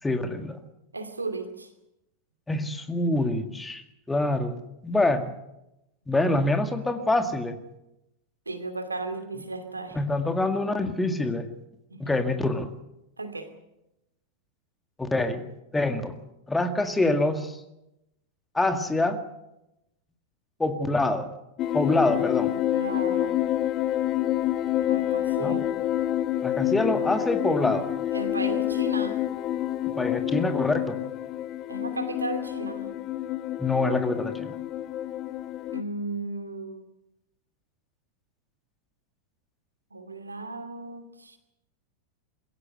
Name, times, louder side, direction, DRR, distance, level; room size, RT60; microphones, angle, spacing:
voice 1, 0.0-0.6 2.5-4.6 4.8-5.3 6.1-7.6 9.9-11.5 12.0-12.7 15.0-15.5 15.7-16.2 16.5-17.6 18.5-19.2 20.6-21.3 21.7-22.5 25.4-25.6 26.4-27.9 30.0-31.0 33.6-34.6, left 2 dB, 10° left, 7 dB, 1.9 m, -25 dB
voice 2, 0.9-1.7 8.5-10.0 11.9-12.1 13.2-13.5 22.5-23.4 24.9-25.8 28.1-29.2 31.7-32.9 35.7-36.8 39.9-41.4, right 3 dB, 80° right, 7 dB, 2.5 m, -35 dB
sound 1, 21.6-35.8, left 13 dB, 35° left, 0.8 m, -28 dB
23.5 x 15.5 x 7.8 m, 0.90 s
figure-of-eight pair, 90°, 0 cm